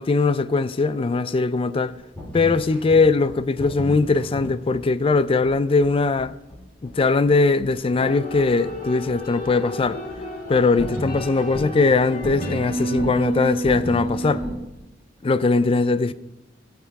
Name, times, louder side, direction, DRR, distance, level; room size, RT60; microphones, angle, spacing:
voice 1, 0.0-2.0 2.3-6.3 6.8-10.0 10.5-14.4 15.2-16.1, left 3 dB, 30° left, 0.4 m, -20 dB
sound 1, 1.9-14.6, left 1 dB, 10° left, 3.9 m, -35 dB
sound 2, 8.0-14.5, right 1 dB, 50° left, 3.2 m, -30 dB
17.0 x 5.9 x 4.7 m
head